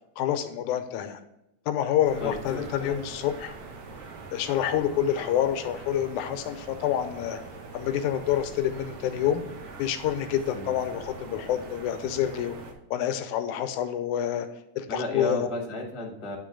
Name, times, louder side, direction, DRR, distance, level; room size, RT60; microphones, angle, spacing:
voice 1, 0.2-1.2 1.7-3.5 4.3-7.4 7.7-9.4 9.8-12.6 12.9-14.5 14.8-15.5, left 10 dB, 85° left, 8 dB, 2.1 m, -27 dB
sound 1, 2.0-12.7, right 4 dB, 60° right, 1.7 m, -43 dB
voice 2, 2.2-3.0 10.5-10.7 14.9-16.4, left 2 dB, 20° left, -1 dB, 0.8 m, -33 dB
9.5 x 3.8 x 5.1 m, 0.86 s
omnidirectional pair, 3.5 m